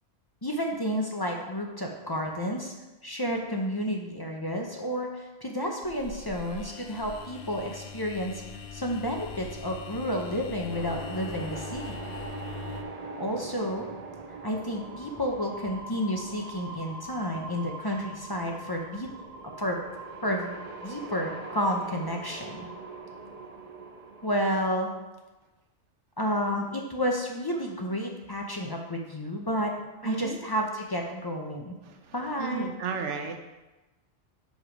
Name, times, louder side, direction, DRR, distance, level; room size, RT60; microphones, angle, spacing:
voice 1, 0.4-2.7 3.0-8.4 8.7-12.0 13.2-13.9 14.4-19.1 19.6-19.8 20.2-20.6 20.8-22.7 24.2-24.9 26.2-29.7 30.0-31.7 32.1-32.7, equal, 30° left, 1 dB, 0.5 m, -31 dB
sound 1, 5.8-12.8, left 6 dB, 70° left, 0.8 m, -42 dB
sound 2, 10.7-24.6, right 3 dB, 50° right, 0.5 m, -42 dB
voice 2, 30.0-30.4 32.4-33.4, right 5 dB, 90° right, 5 dB, 1.1 m, -32 dB
5.2 x 4.9 x 5.0 m, 1.1 s
omnidirectional pair, 1.2 m